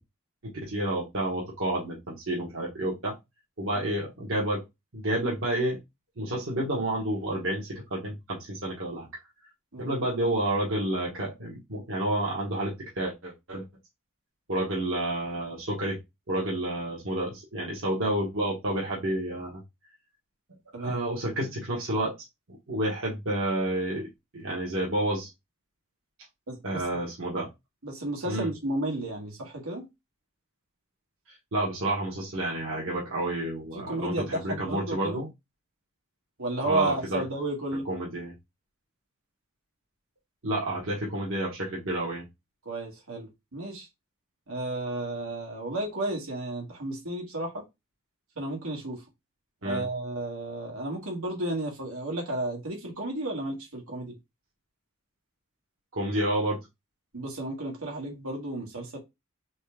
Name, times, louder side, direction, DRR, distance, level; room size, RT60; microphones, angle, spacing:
voice 1, 0.4-3.1 3.6-4.6 4.9-5.8 6.2-9.1 9.8-13.6 14.5-16.0 16.3-19.6 20.7-22.1 22.7-25.3 26.6-27.5 28.2-28.5 31.5-35.3 36.6-37.2 37.8-38.3 40.4-42.2 49.6-49.8 55.9-56.6, right 1 dB, 65° right, 1.4 m, -30 dB
voice 2, 26.5-26.8 27.8-29.9 33.7-35.2 36.4-37.9 42.7-43.9 44.5-47.6 48.4-49.0 49.6-54.1 57.1-59.0, right 1 dB, 85° right, 1.9 m, -32 dB
4.2 x 3.4 x 3.5 m
head